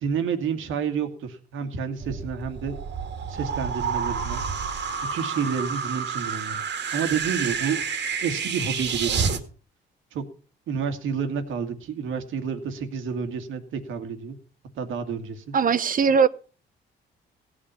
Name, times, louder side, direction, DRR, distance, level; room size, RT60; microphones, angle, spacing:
voice 1, 0.0-2.8 3.3-4.4 5.1-6.6 6.9-7.8 8.2-9.4 10.1-10.2 10.7-14.4 14.8-15.5, right 6 dB, 80° right, 2.0 m, -29 dB
sound 1, 2.0-9.4, right 6 dB, 65° right, 2.0 m, -29 dB
voice 2, 15.5-16.3, right 6 dB, 45° right, 0.8 m, -19 dB
16.0 x 8.8 x 5.6 m
cardioid pair, 90°, 20 cm